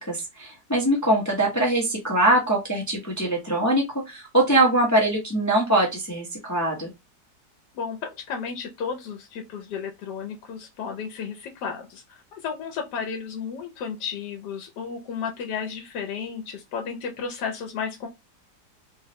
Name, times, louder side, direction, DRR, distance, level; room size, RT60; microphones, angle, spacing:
voice 1, 0.0-6.9, right 1 dB, 25° left, 0.3 m, -22 dB
voice 2, 7.7-18.1, left 6 dB, 80° left, 1.1 m, -33 dB
3.5 x 2.0 x 2.7 m
omnidirectional pair, 1.8 m